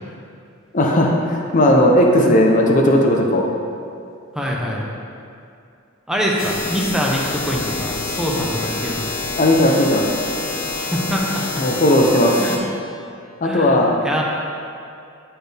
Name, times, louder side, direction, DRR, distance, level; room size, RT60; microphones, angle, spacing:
voice 1, 0.7-3.5 9.4-10.1 11.6-12.4 13.4-13.9, left 1 dB, 40° left, 0 dB, 0.7 m, -15 dB
voice 2, 4.3-4.8 6.1-9.0 10.8-11.4 12.4-12.6 13.4-14.2, equal, 5° right, -3 dB, 0.7 m, -24 dB
sound 1, 6.4-12.6, left 3 dB, 75° left, 0.7 m, -27 dB
9.7 x 4.4 x 3.4 m, 2.4 s
head